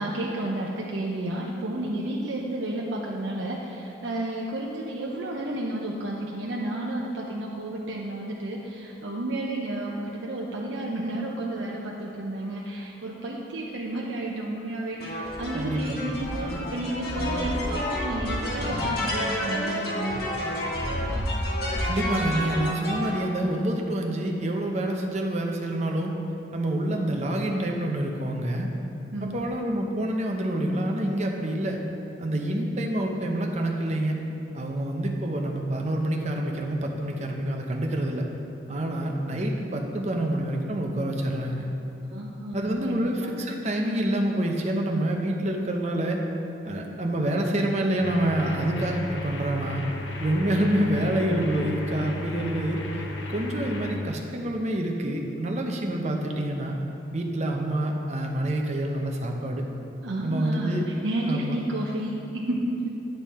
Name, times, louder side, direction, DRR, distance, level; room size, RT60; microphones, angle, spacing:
voice 1, 0.0-20.3 29.1-29.4 42.1-43.3 60.0-62.9, right 1 dB, 80° right, -2 dB, 0.6 m, -31 dB
sound 1, 15.0-23.2, left 1 dB, 55° left, 1.3 m, -29 dB
voice 2, 15.5-16.0 21.8-26.1 26.5-28.7 29.2-31.8 32.2-34.2 34.5-38.2 38.7-41.7 42.5-46.2 46.6-49.8 50.2-52.8 53.3-56.7 57.1-59.6 60.2-60.8 61.3-61.6, right 1 dB, 35° right, 1 dB, 0.7 m, -27 dB
sound 2, 48.0-54.0, left 2 dB, 85° left, 0.8 m, -34 dB
9.1 x 5.3 x 4.2 m, 2.8 s
head